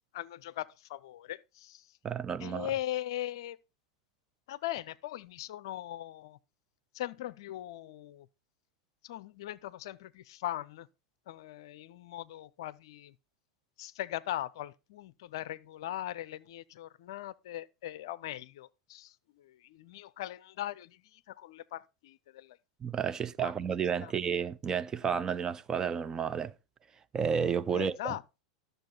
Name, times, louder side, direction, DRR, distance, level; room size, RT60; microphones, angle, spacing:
voice 1, 0.1-1.8 2.4-3.6 4.5-6.4 6.9-8.3 9.0-10.9 11.3-13.1 13.8-19.1 19.4-21.0 21.4-22.6 23.4-23.5 24.0-24.1 27.7-28.2, left 13 dB, 55° left, 0.5 m, -40 dB
voice 2, 2.0-2.7 22.8-26.5 27.1-28.1, right 7 dB, 20° right, 0.5 m, -31 dB
13.0 x 6.8 x 4.1 m
figure-of-eight pair, 90°, 3 cm